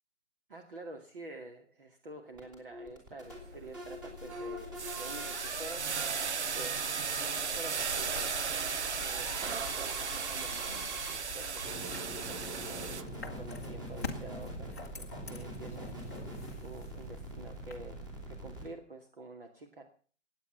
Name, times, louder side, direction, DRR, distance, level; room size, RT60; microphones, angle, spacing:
voice 1, 0.5-6.3 6.5-8.4 9.0-13.1 13.4-16.0 16.3-18.1 18.4-19.8, right 2 dB, 45° right, 4 dB, 2.3 m, -48 dB
sound 1, 2.3-18.7, right 1 dB, 15° right, 3.4 m, -44 dB
sound 2, 3.3-17.8, left 5 dB, 15° left, 1.0 m, -48 dB
sound 3, 3.3-3.6 4.0-13.0, right 6 dB, 65° right, 0.9 m, -36 dB
18.0 x 8.8 x 7.2 m, 0.43 s
hypercardioid pair, 180°, 37 cm